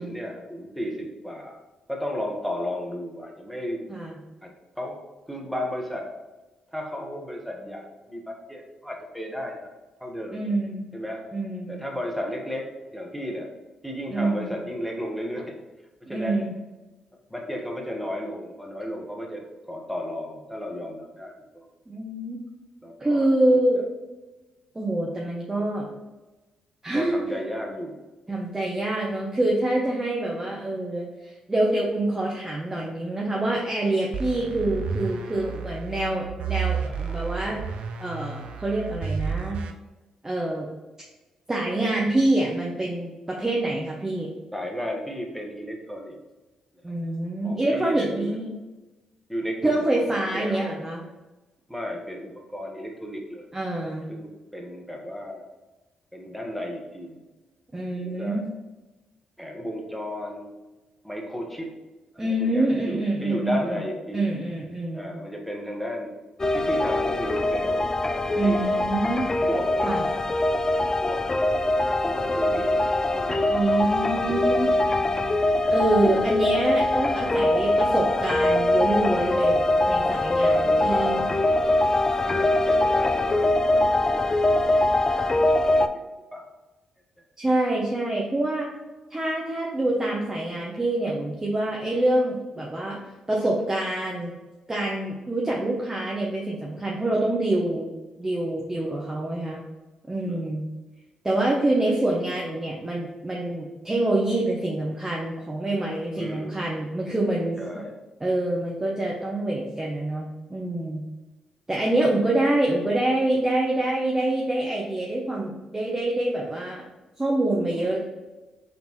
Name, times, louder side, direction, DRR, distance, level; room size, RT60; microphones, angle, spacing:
voice 1, 0.0-1.6 1.9-3.8 4.8-5.0 5.3-6.1 6.7-9.7 10.0-10.5 10.9-11.2 11.7-13.5 13.8-15.5 16.1-16.4 17.3-19.4 19.7-21.7 22.8-23.3 23.5-23.8 26.9-27.9 36.8-37.6 44.5-46.2 47.4-48.4 49.3-50.1 50.3-50.7 51.7-53.5 54.1-55.4 56.1-57.2 57.9-58.4 59.4-60.5 61.0-61.7 62.1-64.4 64.9-66.1 66.5-68.7 69.4-69.9 70.6-71.2 71.8-73.5 76.0-76.2 80.5-81.1 82.2-84.5 85.3-85.4 85.9-86.0 86.3-86.4 98.8-99.0 100.3-100.4 106.1-106.5 107.6-107.9 117.7-117.9, equal, ahead, 0 dB, 1.2 m, -34 dB
voice 2, 3.9-4.2 10.3-10.9 11.3-11.8 14.1-14.5 16.1-16.5 21.9-22.4 23.0-23.8 24.7-25.9 26.8-27.4 28.3-37.6 38.0-39.6 40.2-40.7 41.5-44.3 46.8-48.5 49.6-51.1 53.5-54.1 57.7-58.5 62.2-63.8 64.1-65.1 68.3-69.3 69.8-70.1 73.5-74.7 75.7-79.6 79.9-81.3 87.4-88.7 89.1-93.0 93.3-94.3 94.7-97.9 98.2-99.6 100.1-100.7 101.2-107.6 108.2-111.0 111.7-116.8 117.2-118.0, right 1 dB, 20° right, -2 dB, 0.8 m, -26 dB
sound 1, 34.1-39.7, right 6 dB, 60° right, 0.4 m, -31 dB
sound 2, 66.4-85.9, left 1 dB, 25° left, 0.4 m, -23 dB
4.0 x 3.4 x 3.1 m, 1.1 s
hypercardioid pair, 40°, 2 cm